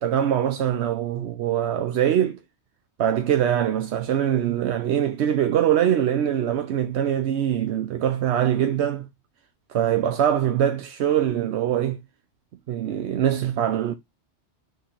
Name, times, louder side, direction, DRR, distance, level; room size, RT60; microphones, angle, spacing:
voice 1, 0.0-2.4 3.0-9.1 9.7-12.0 12.7-13.9, right 10 dB, 75° right, 0.9 m, -23 dB
6.3 x 3.2 x 5.8 m
omnidirectional pair, 1.2 m